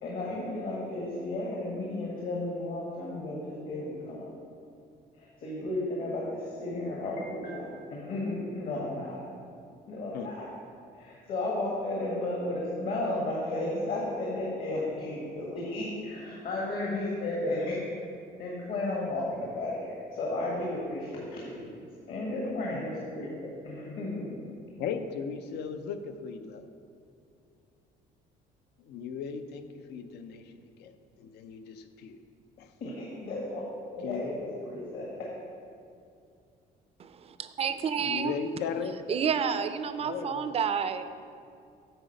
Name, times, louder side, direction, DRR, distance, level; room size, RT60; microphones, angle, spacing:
voice 1, 0.0-4.3 5.2-9.2 9.9-10.5 10.9-17.8 18.4-21.8 22.1-24.4 32.8-33.6 33.9-35.3, left 2 dB, 60° left, -4 dB, 1.6 m, -33 dB
voice 2, 22.4-22.8 24.8-26.7 28.8-30.9 31.2-32.2 32.6-32.7 34.0-34.4 38.0-39.2 40.0-40.5, left 6 dB, 80° left, 8 dB, 0.6 m, -37 dB
voice 3, 37.0-38.3 39.1-41.1, right 7 dB, 35° right, 11 dB, 0.5 m, -30 dB
9.0 x 4.0 x 6.4 m, 2.4 s
cardioid pair, 110°, 17 cm